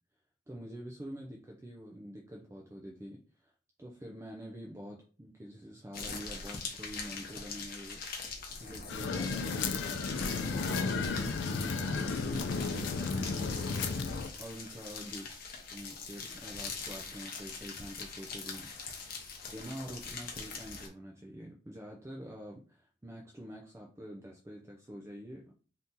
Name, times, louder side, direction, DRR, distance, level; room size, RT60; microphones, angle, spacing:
voice 1, 0.5-3.5 3.8-8.0 8.6-11.7 12.0-15.2 15.7-19.1 19.4-25.5, equal, 15° right, -1 dB, 0.4 m, -46 dB
sound 1, 5.9-20.9, left 4 dB, 55° left, 0.7 m, -43 dB
sound 2, 8.9-14.3, left 4 dB, 85° left, 0.4 m, -33 dB
2.7 x 2.7 x 3.6 m, 0.40 s
head